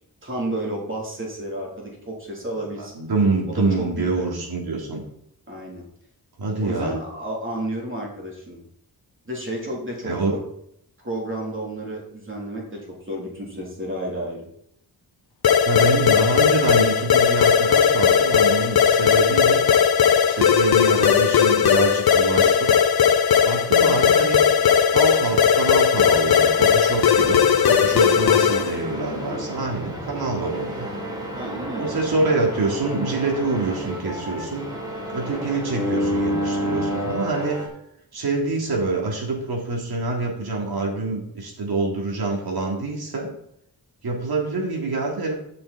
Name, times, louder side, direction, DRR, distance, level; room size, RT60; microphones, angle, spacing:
voice 1, 0.2-2.9 3.6-4.3 5.5-5.8 6.6-8.6 9.3-10.4 11.0-14.5 31.4-31.9, right 1 dB, 30° right, -2 dB, 3.7 m, -31 dB
voice 2, 2.8-5.0 6.4-7.0 10.0-10.3 15.7-19.7 20.3-22.7 23.4-24.5 24.9-31.0 31.8-34.7 35.1-37.6 38.1-43.3 44.0-45.3, right 3 dB, 75° right, -1 dB, 3.6 m, -26 dB
sound 1, 15.4-28.8, left 7 dB, 75° left, 0.9 m, -17 dB
sound 2, 25.9-37.7, equal, 10° right, 4.4 m, -30 dB
13.5 x 6.9 x 4.4 m, 0.71 s
wide cardioid pair, 85°, 37 cm